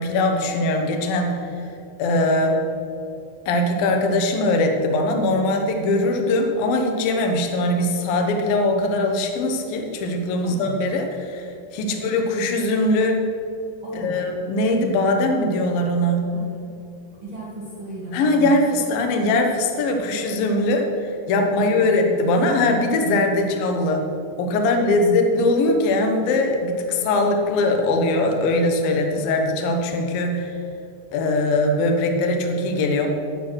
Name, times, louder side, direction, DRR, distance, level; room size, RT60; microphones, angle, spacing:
voice 1, 0.0-1.4 2.0-2.6 3.5-13.3 13.9-16.3 18.1-24.0 24.4-30.5 31.1-33.1, left 2 dB, 70° left, 3 dB, 2.3 m, -21 dB
voice 2, 10.4-10.7 11.8-12.0 13.8-14.2 16.3-16.6 17.2-18.5 21.5-21.9 23.4-23.5 24.6-25.0 29.1-29.3, right 1 dB, 75° right, -6 dB, 1.1 m, -36 dB
11.5 x 9.2 x 6.3 m, 2.6 s
omnidirectional pair, 5.7 m